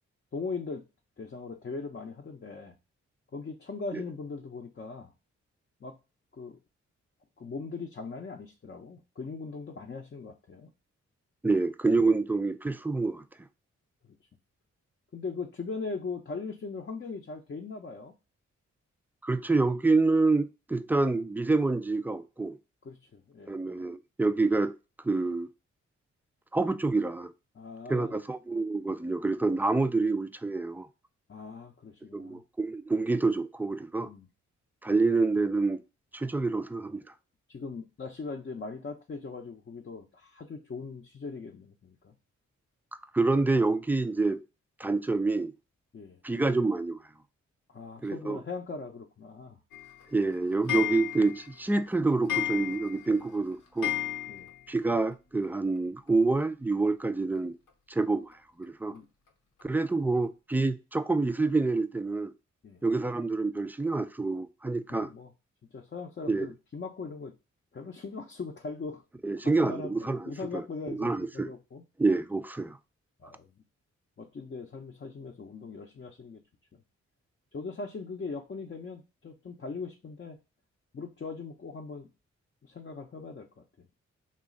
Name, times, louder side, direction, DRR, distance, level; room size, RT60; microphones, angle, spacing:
voice 1, 0.3-0.8 1.2-2.7 3.3-5.1 5.8-6.0 6.3-6.6 7.4-10.7 15.1-18.1 22.8-23.5 27.5-28.2 31.3-32.4 34.0-34.3 37.5-42.1 45.9-46.2 47.7-49.6 53.1-53.2 54.3-54.5 58.9-59.1 59.9-60.2 62.6-62.8 64.9-65.3 65.7-67.3 67.7-69.0 69.4-71.8 73.2-73.5 74.2-76.4 77.5-80.4 80.9-82.1 82.6-83.9, left 4 dB, 35° left, 0.6 m, -40 dB
voice 2, 11.4-13.2 19.2-22.6 23.5-24.7 25.0-25.5 26.5-27.3 27.9-30.9 32.1-34.1 34.8-35.8 36.1-37.0 43.1-44.4 44.8-45.5 46.2-47.0 48.0-48.4 50.1-54.0 54.7-57.6 57.9-59.0 59.6-62.3 62.8-65.1 66.3-66.5 69.2-70.6 70.9-71.5 72.0-72.8, right 3 dB, 5° right, 0.3 m, -27 dB
Clock, 49.7-54.8 55.1-55.2 55.4-55.5 55.8-55.9 57.0-57.1 57.7-57.8 58.3-58.4 59.0-59.1 59.6-59.7 60.2-60.3, left 12 dB, 85° left, 0.7 m, -35 dB
3.0 x 2.4 x 3.7 m
supercardioid pair, 45°, 31 cm